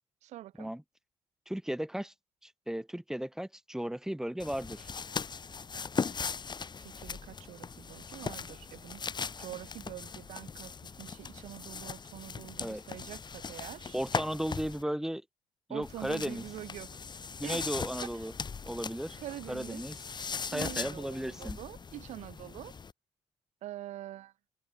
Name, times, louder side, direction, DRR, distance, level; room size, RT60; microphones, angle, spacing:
voice 1, 0.2-0.7 6.8-9.0 9.4-10.7 11.0-14.0 15.7-17.0 17.4-17.6 18.2-18.3 19.2-19.8 20.5-22.7 23.6-24.3, right 14 dB, 80° right, 1.3 m, -45 dB
voice 2, 1.5-2.1 2.4-4.9 12.6-12.8 13.9-15.2 15.7-16.4 17.4-18.3 18.6-19.2 19.5-20.0 20.5-21.6, equal, 5° right, 2.6 m, -35 dB
sound 1, 4.4-14.8 15.8-22.9, left 5 dB, 40° left, 3.5 m, -39 dB
cardioid pair, 80°, 12 cm